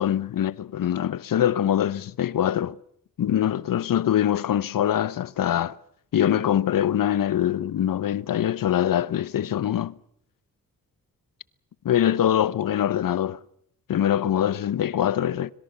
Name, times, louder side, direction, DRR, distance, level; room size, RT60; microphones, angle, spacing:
voice 1, 0.0-2.8 3.2-5.7 6.1-9.9 11.8-13.4 13.9-15.5, left 10 dB, 75° left, 0.9 m, -23 dB
25.5 x 22.5 x 6.9 m
wide cardioid pair, 130°, 34 cm